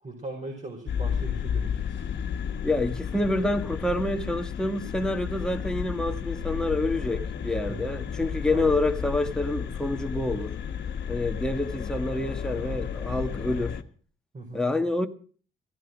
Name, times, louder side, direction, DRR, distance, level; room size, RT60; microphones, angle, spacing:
voice 1, 0.0-2.0 7.7-7.9 8.5-8.7 14.3-14.7, right 2 dB, 40° right, 5.0 m, -39 dB
sound 1, 0.9-13.8, left 8 dB, 60° left, 1.5 m, -32 dB
voice 2, 2.6-10.5 11.1-13.8 14.5-15.1, left 2 dB, 5° left, 1.7 m, -27 dB
17.0 x 11.0 x 6.3 m
cardioid pair, 90°, 20 cm